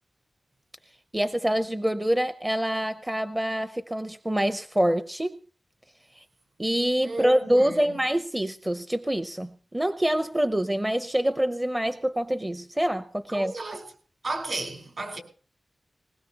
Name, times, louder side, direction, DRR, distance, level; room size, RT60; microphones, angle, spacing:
voice 1, 1.1-5.4 6.1-6.2 6.6-13.5, right 1 dB, 10° right, 0.7 m, -26 dB
voice 2, 7.0-8.0 13.3-13.9 14.2-15.2, right 2 dB, 55° right, 4.5 m, -34 dB
20.5 x 20.5 x 2.9 m
wide cardioid pair, 120°, 0 cm